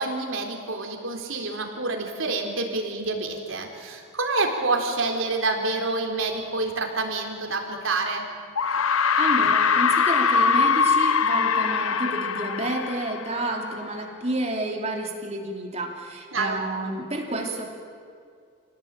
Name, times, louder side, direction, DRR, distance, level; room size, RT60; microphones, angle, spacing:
voice 1, 0.0-8.3 16.3-16.7, right 3 dB, 70° right, 2 dB, 3.8 m, -27 dB
sound 1, 7.7-7.8 8.6-13.8, left 5 dB, 80° left, 0.9 m, -22 dB
voice 2, 9.2-17.8, right 1 dB, 30° right, 1 dB, 3.1 m, -30 dB
27.0 x 18.0 x 9.0 m, 2.2 s
head